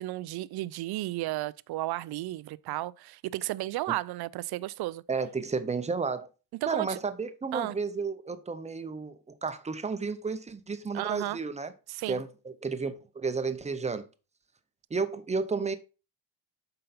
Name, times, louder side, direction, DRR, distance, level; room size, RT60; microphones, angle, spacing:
voice 1, 0.0-5.0 6.6-7.0 7.5-7.8 10.9-11.4 11.9-12.2, right 17 dB, 55° right, 0.5 m, -33 dB
voice 2, 5.1-6.3 6.7-11.7 12.1-14.1 14.9-15.8, right 4 dB, 15° right, 0.7 m, -32 dB
7.8 x 5.4 x 4.2 m
cardioid pair, 140°, 49 cm